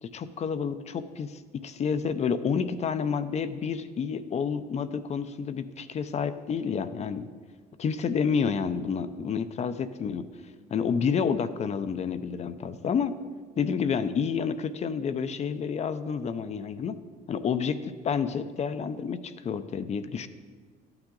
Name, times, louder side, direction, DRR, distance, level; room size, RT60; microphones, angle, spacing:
voice 1, 0.0-7.3 7.8-10.3 10.7-13.1 13.6-17.0 17.3-20.3, left 6 dB, 40° left, 12 dB, 0.6 m, -29 dB
13.0 x 8.9 x 3.9 m, 1.5 s
cardioid pair, 110°, 17 cm